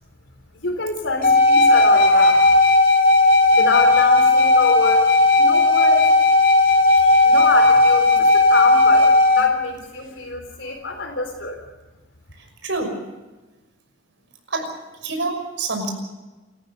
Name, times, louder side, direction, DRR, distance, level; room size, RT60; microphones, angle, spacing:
voice 1, 0.6-2.6 3.5-6.1 6.9-11.6, left 3 dB, 75° left, 3 dB, 3.9 m, -26 dB
sound 1, 1.2-9.5, left 2 dB, 45° left, 2.7 m, -15 dB
voice 2, 12.4-13.0 14.5-14.7 15.0-15.9, right 3 dB, 70° right, 4 dB, 6.0 m, -27 dB
29.5 x 15.0 x 6.7 m, 1.2 s
head